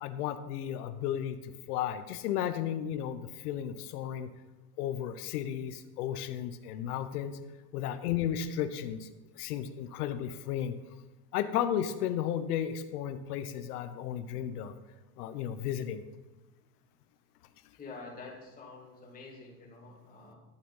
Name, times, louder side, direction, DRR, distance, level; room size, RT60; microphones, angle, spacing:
voice 1, 0.0-4.3 4.8-7.4 7.7-9.1 9.4-10.8 11.3-14.7 15.2-16.0, left 10 dB, 75° left, 9 dB, 1.0 m, -34 dB
voice 2, 17.7-20.3, left 3 dB, 20° left, -3 dB, 2.8 m, -47 dB
11.5 x 7.3 x 5.5 m, 1.1 s
supercardioid pair, 155°, 46 cm